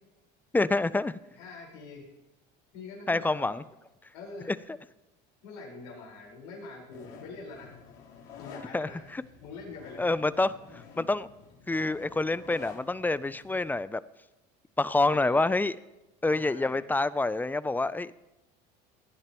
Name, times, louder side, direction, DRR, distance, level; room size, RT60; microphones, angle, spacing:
voice 1, 0.5-1.2 3.1-3.6 4.5-4.6 8.7-9.2 10.0-11.3 11.7-14.0 14.8-15.8 16.2-18.2, left 2 dB, 10° left, 17 dB, 0.4 m, -27 dB
voice 2, 1.3-2.1 2.7-3.6 4.1-4.5 5.4-7.8 8.4-10.1 15.1-15.4 16.2-16.9, left 3 dB, 85° left, -2 dB, 4.7 m, -45 dB
sound 1, 6.9-13.7, left 6 dB, 65° left, 3.7 m, -50 dB
18.0 x 10.5 x 3.0 m, 0.99 s
supercardioid pair, 100°, 21 cm